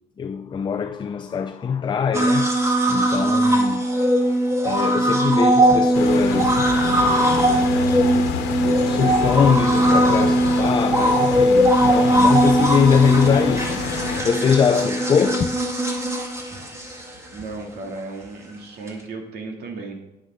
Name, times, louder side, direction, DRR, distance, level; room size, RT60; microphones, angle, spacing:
voice 1, 0.2-6.7 8.9-13.8 14.2-15.5, left 7 dB, 25° left, 0.5 m, -22 dB
sound 1, 2.1-17.4 18.9-19.0, right 1 dB, 15° right, 1.9 m, -19 dB
sound 2, 5.9-14.2, left 7 dB, 90° left, 1.2 m, -28 dB
voice 2, 17.3-20.0, right 3 dB, 70° right, 2.5 m, -34 dB
9.6 x 9.4 x 3.7 m
cardioid pair, 110°, 17 cm